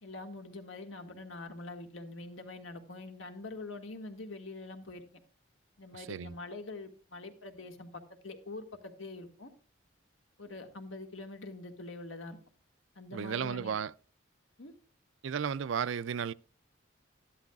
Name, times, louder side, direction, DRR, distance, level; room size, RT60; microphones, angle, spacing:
voice 1, 0.0-5.2 5.8-7.9 8.2-9.5 10.4-12.4 13.0-13.8 14.6-14.7, left 2 dB, 85° left, 1.8 m, -44 dB
voice 2, 5.9-6.3 13.1-13.9 15.2-16.3, right 7 dB, 80° right, 0.4 m, -34 dB
13.0 x 12.0 x 2.4 m
head